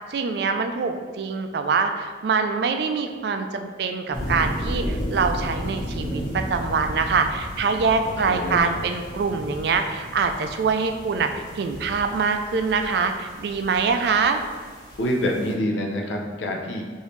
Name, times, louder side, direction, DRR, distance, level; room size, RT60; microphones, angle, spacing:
voice 1, 0.1-11.3 11.6-14.4, right 5 dB, 60° right, 7 dB, 0.3 m, -24 dB
sound 1, 4.1-15.5, equal, 20° left, 1.1 m, -34 dB
voice 2, 8.0-8.6 15.0-16.9, left 1 dB, 80° left, 0 dB, 0.6 m, -26 dB
4.9 x 2.7 x 3.1 m, 1.5 s
head